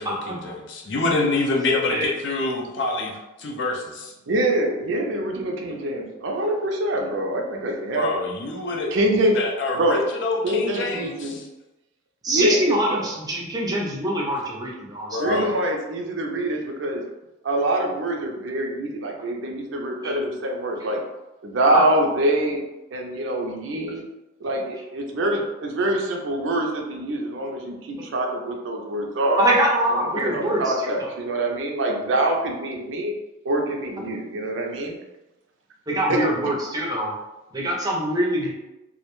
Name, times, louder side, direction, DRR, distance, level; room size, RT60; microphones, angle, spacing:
voice 1, 0.0-3.1 3.4-4.1 7.9-8.9 9.3-11.4 15.1-15.6, left 2 dB, 65° left, 1 dB, 0.4 m, -26 dB
voice 2, 4.3-8.1 8.9-9.3 9.7-10.0 10.4-11.4 12.3-13.0 15.2-17.0 17.4-21.0 21.4-22.6 22.9-24.0 24.4-29.4 30.1-33.1 33.4-35.0 36.1-36.5, right 1 dB, 70° right, 1 dB, 0.4 m, -25 dB
voice 3, 12.2-15.5 20.0-20.1 29.4-31.1 35.9-37.1 37.5-38.5, right 1 dB, 20° right, -3 dB, 0.5 m, -24 dB
2.3 x 2.1 x 2.9 m, 1.0 s
head